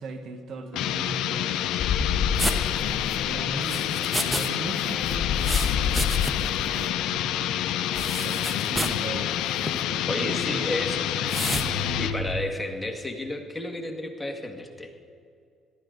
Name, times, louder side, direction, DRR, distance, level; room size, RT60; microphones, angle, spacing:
voice 1, 0.0-2.5 3.2-7.6 8.1-9.3 9.8-11.9, right 4 dB, 60° right, 7 dB, 1.2 m, -40 dB
sound 1, 0.7-12.2, left 11 dB, 75° left, 0.6 m, -28 dB
sound 2, 1.8-2.8 5.0-6.6 10.8-12.4, left 6 dB, 55° left, 1.6 m, -28 dB
sound 3, 2.4-4.5 4.8-6.6 6.8-6.9 7.9-9.0 9.6-9.8 11.3-11.7, equal, 10° right, 1.1 m, -31 dB
voice 2, 10.1-11.1 12.0-14.9, left 1 dB, 10° left, 2 dB, 1.8 m, -32 dB
18.0 x 12.5 x 3.9 m, 2.4 s
supercardioid pair, 80°, 0 cm